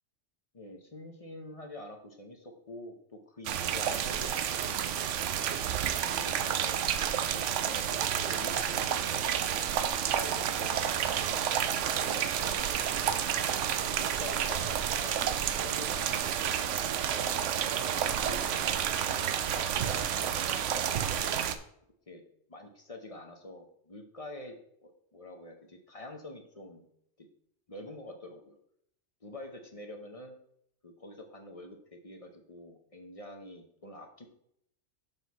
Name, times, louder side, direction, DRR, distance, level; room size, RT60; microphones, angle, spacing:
voice 1, 0.5-5.2 6.0-9.5 10.0-13.1 13.8-17.1 17.9-21.2 22.1-22.2 22.5-26.9 27.2-27.3 27.7-28.6 29.2-30.4 30.8-34.2, left 1 dB, 35° left, 4 dB, 0.9 m, -47 dB
sound 1, 3.5-21.6, right 9 dB, 80° right, 0.9 m, -30 dB
6.9 x 6.1 x 4.1 m, 0.71 s
omnidirectional pair, 1.2 m